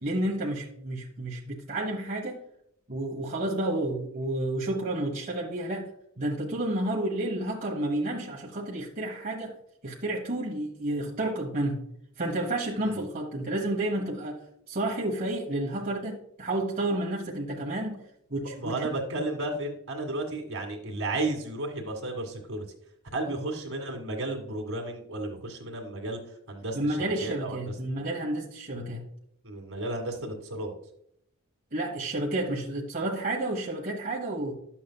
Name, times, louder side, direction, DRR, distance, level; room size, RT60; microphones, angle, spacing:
voice 1, 0.0-2.4 2.9-5.9 6.2-9.5 9.8-11.8 12.2-14.4 14.7-18.0 18.3-18.9 23.2-23.4 26.7-29.0 31.7-34.5, right 1 dB, 40° right, -3 dB, 1.2 m, -30 dB
voice 2, 18.4-22.7 23.1-26.2 26.5-27.6 29.4-30.7, right 2 dB, 70° right, 1 dB, 1.9 m, -33 dB
11.0 x 7.2 x 2.3 m, 0.72 s
head